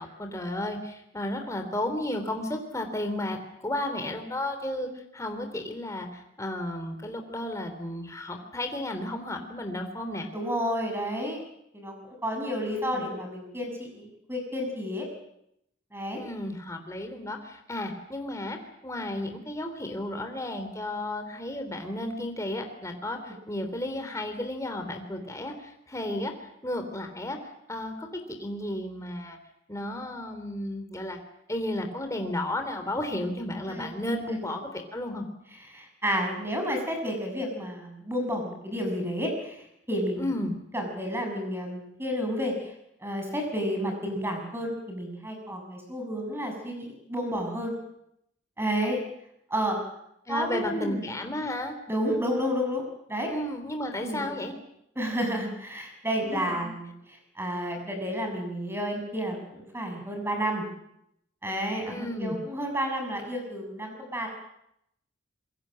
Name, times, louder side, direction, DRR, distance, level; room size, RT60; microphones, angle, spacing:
voice 1, 0.0-3.4 3.6-10.3 12.7-13.1 16.2-18.6 18.8-29.4 29.7-31.2 31.5-35.3 40.2-40.6 50.2-51.8 53.3-54.5 56.2-56.6 61.8-62.4, left 1 dB, 15° left, 5 dB, 3.3 m, -33 dB
voice 2, 10.3-11.4 11.7-15.1 15.9-16.2 33.7-33.9 34.3-34.6 35.7-40.3 40.7-42.7 43.0-47.7 48.6-49.0 49.5-49.8 50.3-51.0 51.9-52.8 53.1-53.3 54.0-54.2 54.9-56.9 57.4-60.7 61.4-64.3, equal, 10° right, 3 dB, 6.7 m, -31 dB
26.5 x 22.5 x 7.6 m, 0.78 s
head